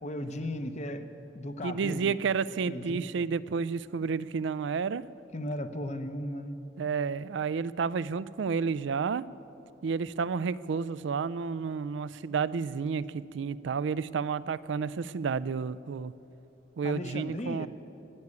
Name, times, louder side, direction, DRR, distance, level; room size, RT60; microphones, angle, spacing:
voice 1, 0.0-1.1 1.3-2.2 2.7-3.0 5.3-6.6 16.8-17.7, left 1 dB, 35° left, 9 dB, 0.8 m, -36 dB
voice 2, 1.6-5.0 6.8-9.2 9.8-16.1 16.8-17.7, right 5 dB, 75° right, 18 dB, 0.4 m, -31 dB
14.0 x 9.6 x 9.6 m, 3.0 s
head